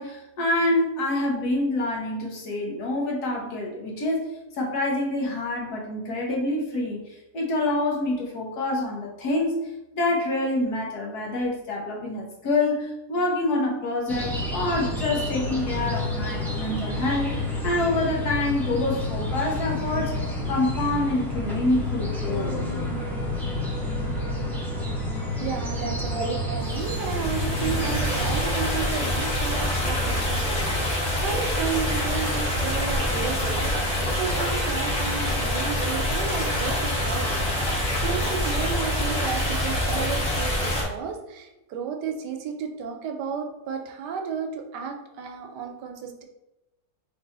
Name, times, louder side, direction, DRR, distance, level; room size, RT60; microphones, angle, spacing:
voice 1, 0.0-9.6 9.9-17.3 17.6-20.2 20.5-22.5 26.0-26.2, left 2 dB, 65° left, -2 dB, 1.5 m, -26 dB
sound 1, 14.1-28.4, left 1 dB, ahead, 0.5 m, -29 dB
voice 2, 25.4-40.5 40.8-46.2, right 6 dB, 80° right, 3 dB, 1.2 m, -33 dB
sound 2, 26.6-40.8, left 1 dB, 45° left, 1.5 m, -26 dB
3.5 x 3.3 x 4.1 m, 0.95 s
omnidirectional pair, 1.8 m